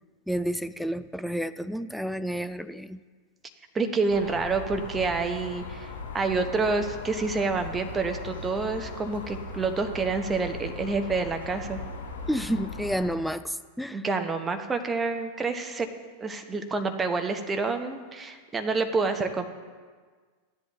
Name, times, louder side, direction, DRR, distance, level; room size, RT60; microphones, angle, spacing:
voice 1, 0.3-3.0 12.3-14.0, equal, ahead, 11 dB, 0.4 m, -30 dB
voice 2, 3.7-11.8 13.9-15.9 16.2-19.5, right 4 dB, 15° right, 6 dB, 0.9 m, -28 dB
sound 1, 4.1-13.2, left 3 dB, 60° left, 2.1 m, -39 dB
14.0 x 10.5 x 3.2 m, 1.5 s
figure-of-eight pair, 90°, 0 cm